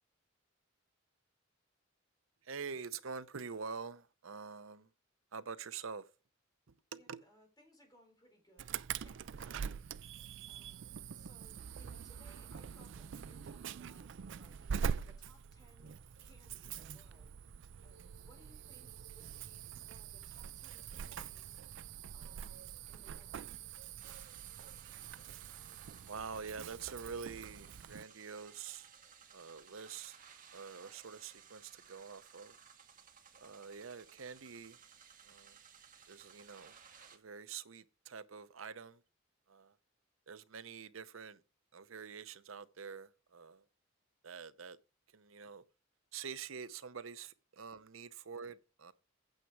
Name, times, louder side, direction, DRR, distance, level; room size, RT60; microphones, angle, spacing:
voice 1, 2.4-4.9 5.3-6.1 7.1-7.2 26.1-28.9 29.3-30.2 30.5-32.5 33.4-34.8 35.2-35.6 36.1-36.8 37.1-39.0 39.5-39.7 40.3-41.4 41.7-43.6 44.2-44.8 45.1-45.6 46.1-48.9, right 6 dB, 85° right, 0.7 m, -46 dB
voice 2, 6.9-9.8 10.1-10.8 11.1-17.4 17.8-21.6 22.1-23.6, equal, 20° left, 3.8 m, -66 dB
Insect / Alarm, 8.6-28.0, right 7 dB, 65° right, 0.4 m, -44 dB
sound 1, 24.0-37.2, right 7 dB, 45° right, 1.7 m, -59 dB
9.1 x 6.9 x 4.7 m
head